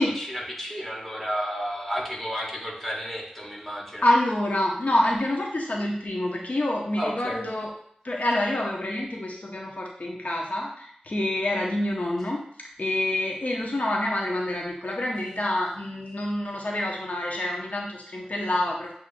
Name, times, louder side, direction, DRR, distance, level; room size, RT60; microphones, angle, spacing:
voice 1, 0.0-4.0 6.9-7.5, equal, 5° left, -3 dB, 1.3 m, -32 dB
voice 2, 4.0-7.7 8.0-12.4 12.8-18.9, left 1 dB, 60° left, -1 dB, 0.6 m, -27 dB
7.3 x 2.5 x 2.5 m, 0.66 s
wide cardioid pair, 50°, 3 cm